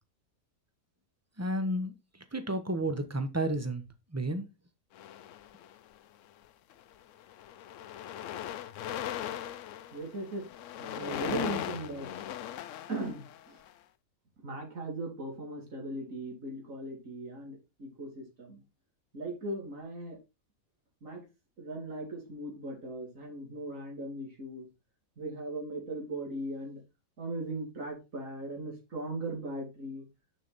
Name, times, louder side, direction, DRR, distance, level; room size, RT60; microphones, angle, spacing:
voice 1, 1.4-1.9 2.3-3.8 4.1-4.5, right 1 dB, 15° right, 0.8 m, -31 dB
sound 1, 4.9-5.9 6.7-6.9 7.2-13.7, left 11 dB, 70° left, 0.9 m, -39 dB
voice 2, 9.9-10.5 10.8-12.1 12.9-13.6 14.4-18.6 19.1-20.2 21.0-21.2 21.6-24.7 25.2-26.8 27.2-30.1, right 2 dB, 70° right, 3.2 m, -38 dB
6.7 x 6.4 x 4.1 m
omnidirectional pair, 1.4 m